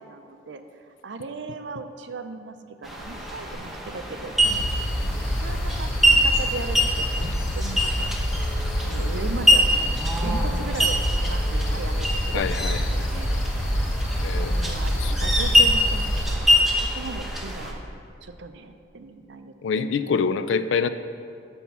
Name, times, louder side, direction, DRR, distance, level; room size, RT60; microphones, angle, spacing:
voice 1, 0.0-2.6 2.8-4.7 5.4-8.1 8.8-13.3 14.5-17.8 18.2-19.9, right 3 dB, 65° right, 8 dB, 0.5 m, -37 dB
sound 1, 2.8-17.7, equal, ahead, 0.8 m, -25 dB
sound 2, 4.4-16.4, equal, 90° left, 0.9 m, -27 dB
voice 2, 12.3-13.4 14.2-14.5 15.0-15.2 19.6-20.9, left 5 dB, 70° left, 12 dB, 0.4 m, -26 dB
10.0 x 3.6 x 7.1 m, 2.4 s
head